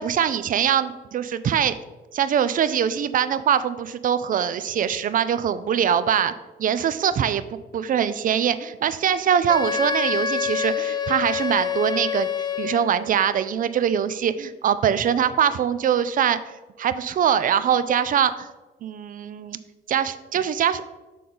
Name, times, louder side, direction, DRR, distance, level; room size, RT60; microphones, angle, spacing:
voice 1, 0.0-1.7 2.1-6.3 6.6-7.4 7.7-12.3 12.6-16.4 16.8-18.5 18.8-19.6 19.9-20.8, right 8 dB, 45° right, 14 dB, 0.4 m, -22 dB
Wind instrument woodwind instrument, 9.5-13.1, left 6 dB, 20° left, 0.5 m, -26 dB
6.6 x 3.9 x 3.8 m, 1.2 s
cardioid pair, 90°, 20 cm